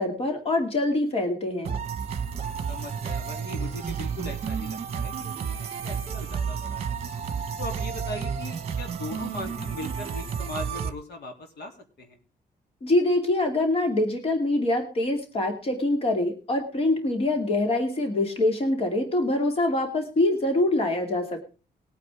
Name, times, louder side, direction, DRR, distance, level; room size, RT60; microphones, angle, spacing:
voice 1, 0.0-1.8 12.8-21.5, left 2 dB, 35° left, 4 dB, 2.5 m, -24 dB
sound 1, 1.6-10.9, right 6 dB, 40° right, 1.5 m, -31 dB
voice 2, 2.7-7.0 7.6-12.2, left 2 dB, 80° left, 4 dB, 3.2 m, -39 dB
20.5 x 9.2 x 3.7 m, 0.34 s
wide cardioid pair, 180°, 17 cm